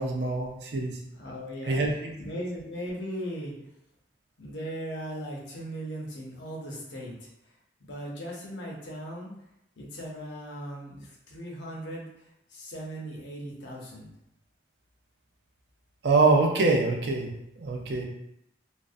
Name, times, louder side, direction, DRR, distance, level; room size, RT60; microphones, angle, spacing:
voice 1, 0.0-1.0 1.7-2.1 16.0-17.3 17.6-18.0, right 3 dB, 65° right, 0 dB, 0.4 m, -24 dB
voice 2, 1.1-1.8 2.2-3.5 4.4-7.5 7.8-9.3 9.8-14.1, equal, 80° left, -2 dB, 0.7 m, -38 dB
2.5 x 2.0 x 2.4 m, 0.81 s
head